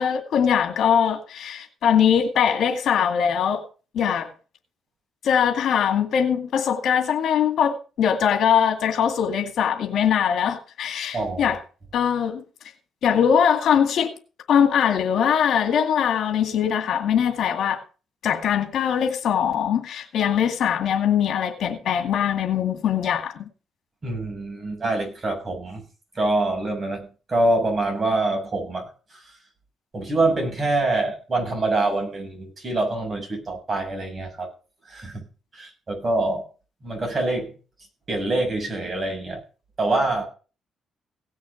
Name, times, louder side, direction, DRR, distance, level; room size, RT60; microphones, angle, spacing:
voice 1, 0.0-3.6 3.9-4.3 5.2-11.6 11.9-12.4 13.0-14.1 14.5-17.8 18.2-23.3, left 8 dB, 70° left, 2.1 m, -21 dB
voice 2, 11.1-11.6 24.0-25.8 26.1-29.4 29.9-34.5 34.9-35.2 35.5-36.4 36.8-37.5 38.1-39.4 39.8-40.2, right 2 dB, 35° right, 6.8 m, -25 dB
17.5 x 6.3 x 5.9 m
cardioid pair, 90°, 0 cm